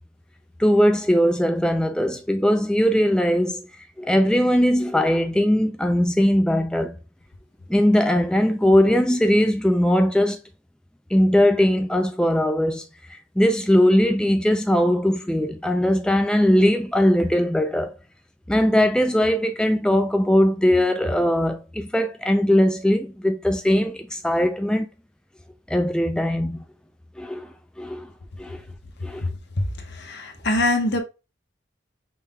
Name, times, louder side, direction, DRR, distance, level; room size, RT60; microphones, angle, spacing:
voice 1, 0.6-7.0 7.7-10.4 11.1-12.8 13.1-18.0 18.5-24.9 25.7-26.6 27.2-27.5 27.8-28.1 28.4-28.6 29.0-29.2, equal, 5° left, 0.3 m, -20 dB
voice 2, 30.0-31.0, left 2 dB, 60° left, 1.0 m, -23 dB
5.5 x 3.4 x 2.2 m
head